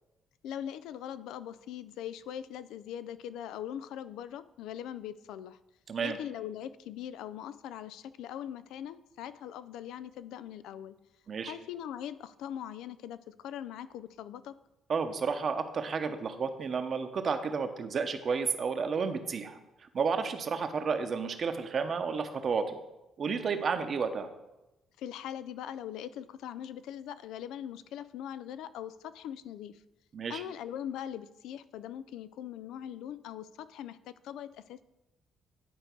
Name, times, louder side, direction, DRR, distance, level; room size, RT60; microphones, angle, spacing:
voice 1, 0.4-5.6 6.0-11.0 11.4-14.6 25.0-29.8 30.3-34.8, left 10 dB, 90° left, 14 dB, 0.3 m, -41 dB
voice 2, 5.9-6.2 11.3-11.5 14.9-22.8 23.2-24.3 30.1-30.4, right 5 dB, 50° right, 8 dB, 0.8 m, -31 dB
10.0 x 4.6 x 4.5 m, 0.98 s
cardioid pair, 90°, 0 cm